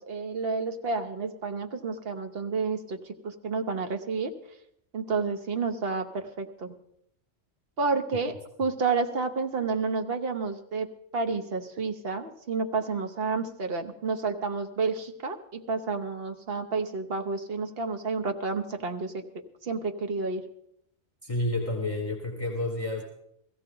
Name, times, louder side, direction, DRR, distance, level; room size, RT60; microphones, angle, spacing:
voice 1, 0.0-4.3 4.9-6.7 7.8-20.4, right 4 dB, 55° right, 5 dB, 1.2 m, -30 dB
voice 2, 21.2-23.0, left 1 dB, 30° left, 0 dB, 1.6 m, -30 dB
16.5 x 14.5 x 3.9 m, 0.74 s
omnidirectional pair, 1.2 m